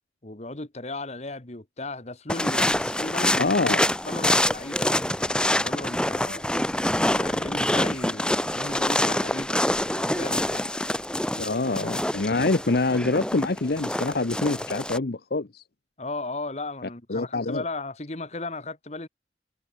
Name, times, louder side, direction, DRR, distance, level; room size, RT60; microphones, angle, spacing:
voice 1, 0.2-3.5 4.0-6.4 7.0-9.6 9.9-10.7 16.0-19.1, left 2 dB, 40° left, 1.7 m, -36 dB
sound 1, 2.3-15.0, left 1 dB, 5° left, 1.3 m, -26 dB
voice 2, 3.4-3.8 11.4-15.6 17.1-17.6, left 3 dB, 60° left, 0.8 m, -25 dB
head